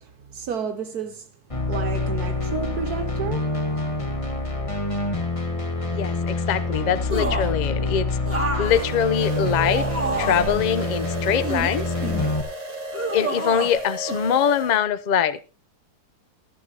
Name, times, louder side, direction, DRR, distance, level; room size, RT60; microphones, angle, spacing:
voice 1, 0.0-1.3 1.7-4.1, right 6 dB, 70° right, 1.4 m, -32 dB
sound 1, 1.5-12.4, left 2 dB, 20° left, 1.4 m, -26 dB
voice 2, 5.9-8.1 8.6-9.9 10.2-11.9 13.1-15.5, left 8 dB, 50° left, 0.5 m, -23 dB
sound 2, 7.1-7.6 8.3-10.6 11.2-12.3 12.9-13.8 14.1-14.2, right 1 dB, 10° right, 1.9 m, -29 dB
sound 3, 8.6-14.8, right 2 dB, 25° right, 1.4 m, -34 dB
14.0 x 13.5 x 2.8 m
omnidirectional pair, 1.7 m